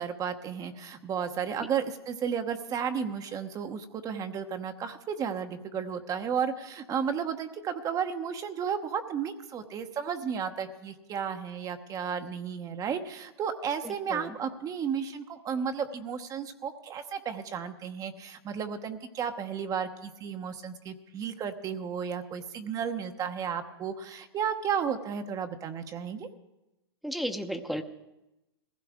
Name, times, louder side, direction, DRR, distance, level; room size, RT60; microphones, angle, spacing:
voice 1, 0.0-26.3, right 7 dB, 25° right, 7 dB, 1.0 m, -33 dB
voice 2, 13.8-14.4 27.0-27.8, equal, ahead, 8 dB, 1.0 m, -34 dB
21.5 x 15.5 x 3.6 m, 0.95 s
hypercardioid pair, 115°, 14 cm